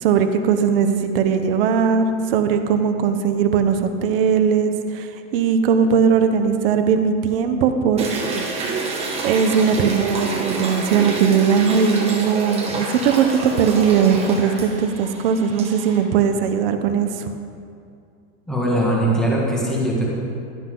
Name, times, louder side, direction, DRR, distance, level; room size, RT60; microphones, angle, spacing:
voice 1, 0.0-8.5 9.2-17.3, right 6 dB, 45° right, 7 dB, 1.0 m, -19 dB
sound 1, 8.0-16.0, right 3 dB, 15° right, 1.4 m, -28 dB
voice 2, 18.5-20.1, right 1 dB, ahead, -5 dB, 1.9 m, -20 dB
16.5 x 12.5 x 3.9 m, 2.4 s
supercardioid pair, 170°, 38 cm